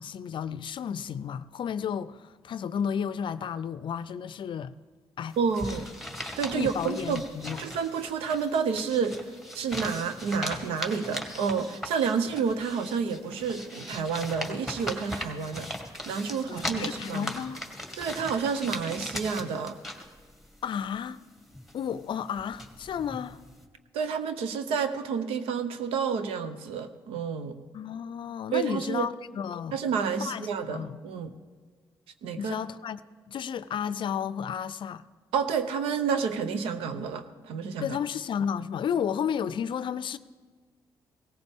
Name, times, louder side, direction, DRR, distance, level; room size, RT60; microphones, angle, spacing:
voice 1, 0.0-4.7 5.2-5.4 6.5-7.6 16.5-17.6 20.6-21.2 21.7-23.4 27.7-29.8 30.2-31.0 32.4-33.0 33.3-35.1 37.8-40.2, left 8 dB, 60° left, 0.5 m, -32 dB
sound 1, 5.3-23.6, left 1 dB, ahead, 2.0 m, -39 dB
voice 2, 5.4-5.9 6.4-7.2 7.6-9.2 9.5-15.7 16.1-17.3 18.0-19.8 23.9-27.6 28.5-29.1 29.7-31.3 32.2-32.6 35.3-38.0, right 6 dB, 90° right, 0.8 m, -29 dB
17.5 x 14.5 x 3.6 m
supercardioid pair, 65°, 9 cm